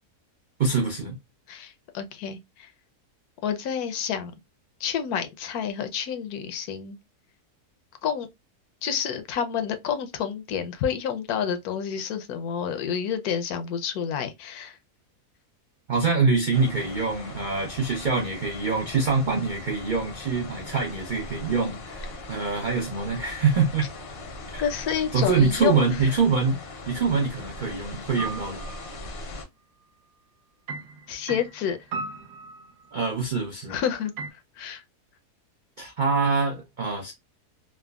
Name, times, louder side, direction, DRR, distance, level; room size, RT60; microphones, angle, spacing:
voice 1, 0.6-1.2 15.9-23.9 24.5-24.6 25.1-26.6 26.9-28.6 32.9-33.8 35.8-37.1, right 4 dB, 90° right, 0.4 m, -25 dB
voice 2, 1.5-2.7 3.4-4.3 4.8-7.0 8.0-8.3 8.8-14.8 24.6-26.1 31.1-31.8 33.7-34.8, left 8 dB, 75° left, 1.0 m, -29 dB
sound 1, 16.5-29.4, left 2 dB, 55° left, 0.7 m, -40 dB
sound 2, 28.2-28.9 30.7-33.0 34.2-34.3, right 4 dB, 70° right, 1.2 m, -36 dB
3.4 x 2.0 x 2.3 m
omnidirectional pair, 1.7 m